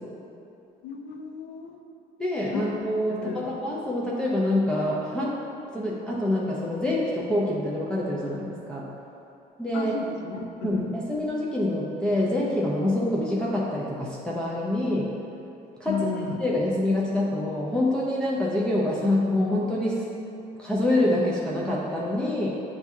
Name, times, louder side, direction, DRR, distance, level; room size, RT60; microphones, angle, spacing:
voice 1, 0.8-1.8 2.5-2.7 3.1-3.5 9.7-11.0 15.9-16.4, left 5 dB, 80° left, 3 dB, 0.5 m, -33 dB
voice 2, 2.2-5.4 5.7-8.9 9.6-10.0 10.6-15.1 15.8-16.1 16.4-20.0 20.6-22.5, left 1 dB, 5° left, -6 dB, 0.4 m, -26 dB
7.0 x 2.7 x 2.3 m, 2.8 s
cardioid pair, 110°, 17 cm